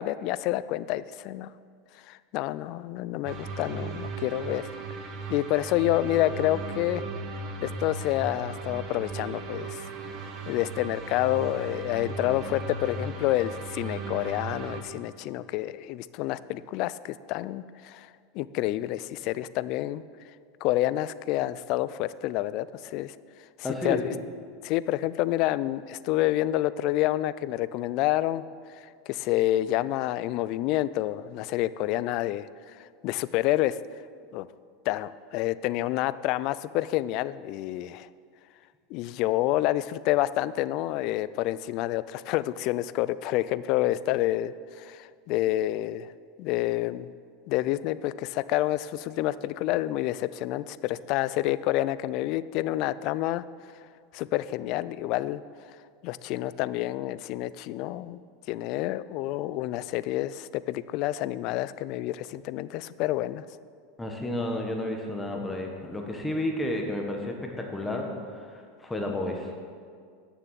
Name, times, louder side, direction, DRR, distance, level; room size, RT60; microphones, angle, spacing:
voice 1, 0.0-1.5 2.0-4.7 5.3-7.0 7.6-9.8 10.5-18.1 18.3-20.0 20.6-23.1 23.6-24.1 24.6-28.4 28.8-33.8 34.3-34.5 34.9-38.1 38.9-46.1 46.4-47.1 47.5-53.4 54.1-55.4 56.0-58.2 58.5-63.4, left 15 dB, 55° left, 16 dB, 0.3 m, -28 dB
sound 1, 3.3-14.8, right 4 dB, 45° right, 1.2 m, -37 dB
voice 2, 23.6-24.0 64.0-69.5, left 1 dB, 10° left, 1 dB, 1.3 m, -32 dB
9.1 x 6.9 x 7.5 m, 2.1 s
supercardioid pair, 125°, 0 cm